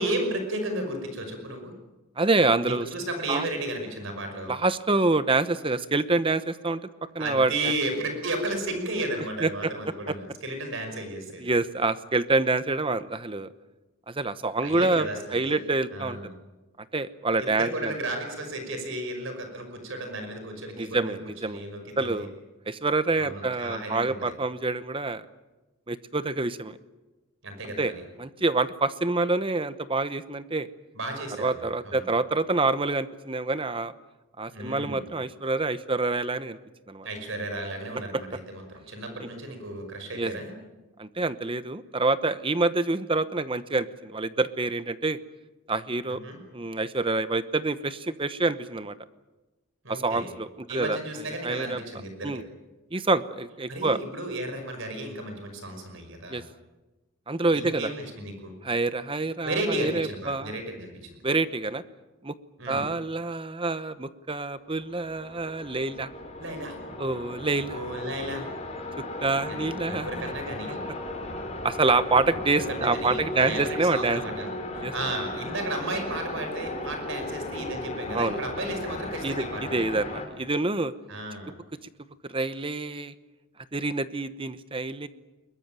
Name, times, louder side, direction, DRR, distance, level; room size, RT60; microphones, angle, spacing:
voice 1, 0.0-1.7 2.6-4.5 7.2-11.5 14.6-15.2 15.4-15.6 15.9-16.3 17.4-21.2 21.5-22.3 23.2-24.3 27.4-28.0 31.0-32.1 34.5-35.1 37.0-40.5 46.1-46.4 49.8-50.3 50.7-52.4 53.7-56.4 57.5-58.5 59.4-61.2 62.6-62.8 66.4-66.8 67.7-68.5 69.5-69.6 69.9-70.8 72.5-74.5 74.7-79.8 81.1-81.5, right 1 dB, 60° right, 5 dB, 5.5 m, -33 dB
voice 2, 2.2-2.9 3.3-3.5 4.5-6.8 7.1-7.7 9.4-9.5 11.4-13.5 14.1-15.1 15.3-16.2 16.9-18.0 20.8-21.6 22.0-22.3 22.7-25.2 25.9-26.8 27.8-27.9 28.2-30.7 31.4-33.9 34.4-36.6 36.9-37.1 39.2-39.3 40.1-40.3 41.0-45.2 45.7-46.2 46.5-48.9 49.9-51.0 51.4-51.8 52.2-52.4 52.9-54.0 56.3-56.4 57.3-57.9 58.6-60.5 61.2-61.8 62.2-62.3 62.7-66.1 67.0-67.8 69.2-70.3 71.6-74.2 74.8-74.9 78.1-78.4 79.2-80.9 82.3-83.1 83.7-85.1, right 3 dB, 25° right, 13 dB, 0.9 m, -27 dB
sound 1, 64.7-80.3, left 1 dB, 30° left, 4.0 m, -36 dB
22.5 x 22.0 x 9.1 m, 1.1 s
head